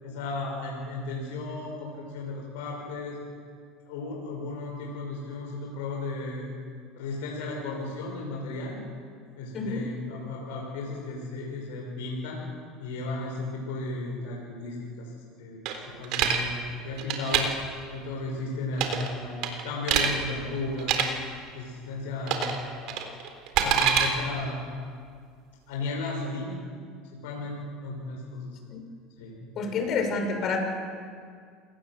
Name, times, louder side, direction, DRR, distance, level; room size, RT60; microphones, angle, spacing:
voice 1, 0.0-3.2 3.9-6.5 7.0-8.8 9.4-12.4 12.8-15.1 15.4-15.6 16.0-16.6 16.8-17.5 17.9-21.1 21.5-23.0 23.6-24.6 25.7-26.6 27.2-28.5 29.2-29.5, left 2 dB, 85° left, -1 dB, 6.0 m, -34 dB
sound 1, 15.7-16.4 17.0-17.4 18.7-19.1 19.4-20.1 20.8-21.0 22.3-22.6 22.9-24.1, right 9 dB, 60° right, 4.0 m, -25 dB
voice 2, 29.6-30.6, left 4 dB, 45° left, 5 dB, 6.3 m, -28 dB
28.0 x 19.0 x 8.0 m, 2.1 s
supercardioid pair, 110°, 0 cm